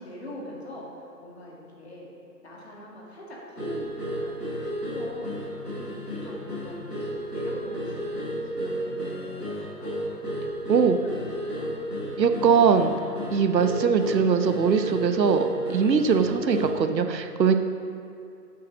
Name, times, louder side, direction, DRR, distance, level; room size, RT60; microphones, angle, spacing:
voice 1, 0.0-2.1 2.4-4.4 4.8-7.1 7.3-10.2 11.0-11.7 12.2-12.5, equal, 40° left, -4 dB, 2.0 m, -43 dB
sound 1, 3.5-16.9, equal, 5° left, 1.2 m, -33 dB
voice 2, 12.2-12.9 13.3-15.5 15.7-17.5, right 6 dB, 85° right, 8 dB, 0.9 m, -21 dB
8.4 x 7.5 x 6.1 m, 2.5 s
hypercardioid pair, 175°, 49 cm